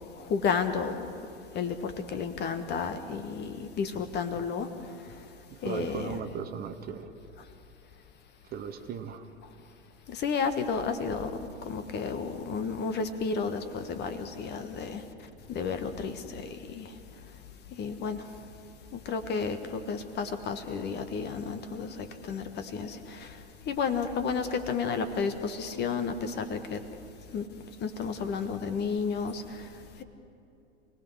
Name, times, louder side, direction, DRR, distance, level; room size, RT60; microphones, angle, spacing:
voice 1, 0.2-1.1 1.5-4.7 5.6-6.2 10.1-11.3 11.6-15.0 15.5-16.9 17.8-18.2 18.9-23.4 23.7-26.8 27.3-27.4 27.8-29.4, left 5 dB, 30° left, 9 dB, 1.5 m, -32 dB
voice 2, 5.5-7.1 8.5-9.3, right 7 dB, 25° right, 7 dB, 1.2 m, -37 dB
28.5 x 19.0 x 6.4 m, 2.7 s
figure-of-eight pair, 90°, 35 cm